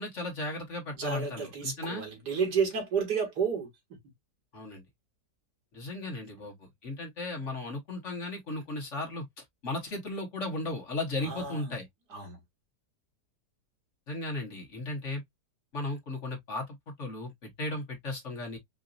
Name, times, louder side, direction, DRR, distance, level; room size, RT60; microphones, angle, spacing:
voice 1, 0.0-2.0 4.5-4.8 5.7-11.9 14.1-15.2 15.7-18.6, left 2 dB, 45° left, 1.6 m, -36 dB
voice 2, 0.9-3.7 11.2-11.7 12.1-12.4, right 6 dB, 75° right, 2.5 m, -31 dB
5.0 x 2.7 x 2.5 m
omnidirectional pair, 1.8 m